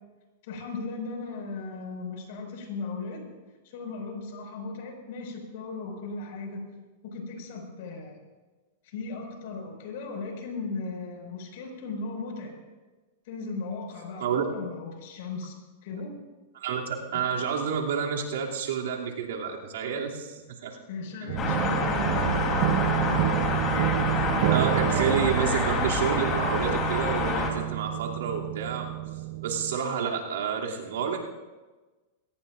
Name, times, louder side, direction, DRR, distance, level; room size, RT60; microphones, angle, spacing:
voice 1, 0.5-3.3 3.6-6.6 7.0-8.2 8.9-12.6 13.3-15.5 15.8-16.1 17.2-17.3 20.9-23.6, left 3 dB, 65° left, 2 dB, 5.7 m, -37 dB
voice 2, 16.5-20.8 21.2-21.4 24.5-28.9 29.4-31.2, right 7 dB, 80° right, -2 dB, 2.9 m, -29 dB
sound 1, 21.3-29.8, right 13 dB, 55° right, 0.5 m, -28 dB
sound 2, 21.4-27.5, left 4 dB, 30° left, 3.6 m, -28 dB
22.5 x 18.0 x 2.6 m, 1.2 s
hypercardioid pair, 135°, 0 cm